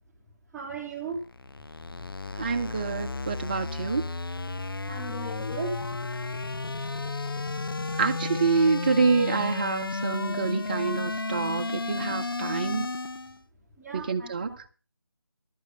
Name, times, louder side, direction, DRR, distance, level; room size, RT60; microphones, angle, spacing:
voice 1, 0.5-1.2 4.9-5.8 13.8-14.6, right 4 dB, ahead, 1.7 m, -36 dB
sound 1, 1.2-13.4, left 3 dB, 65° left, 0.6 m, -33 dB
voice 2, 2.4-4.0 8.0-12.9 13.9-14.5, right 5 dB, 25° right, 0.9 m, -27 dB
12.0 x 8.3 x 7.4 m
figure-of-eight pair, 160°, 13 cm